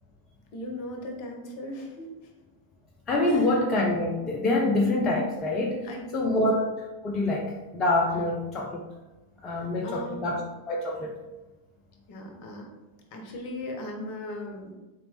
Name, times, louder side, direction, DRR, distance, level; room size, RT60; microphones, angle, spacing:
voice 1, 0.5-2.3 3.2-3.6 4.6-4.8 5.8-6.5 9.5-10.3 12.1-12.7 13.1-14.7, left 1 dB, 50° left, 2 dB, 0.8 m, -38 dB
voice 2, 3.1-5.9 6.1-6.7 7.0-8.9 9.4-10.4 10.7-11.1, left 2 dB, 25° left, -2 dB, 0.5 m, -26 dB
4.0 x 2.9 x 3.1 m, 1.1 s
figure-of-eight pair, 90°, 0 cm